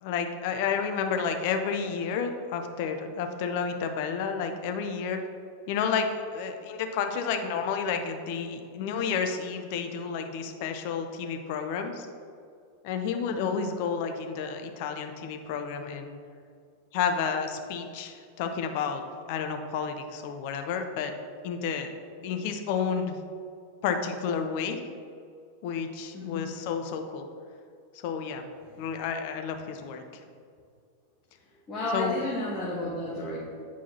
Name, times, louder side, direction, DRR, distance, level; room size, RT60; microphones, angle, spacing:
voice 1, 0.0-5.2 5.7-12.1 12.8-16.2 16.9-19.0 19.3-21.1 21.4-21.9 22.2-23.2 23.8-24.8 25.6-27.2 28.0-28.4 28.8-30.2 31.9-32.1, left 6 dB, 45° left, 6 dB, 0.6 m, -31 dB
voice 2, 13.3-13.6 22.2-22.3 26.1-26.5 28.7-28.8 31.7-33.4, left 2 dB, 25° left, -8 dB, 1.3 m, -33 dB
8.8 x 4.6 x 2.8 m, 2.3 s
figure-of-eight pair, 90°, 0 cm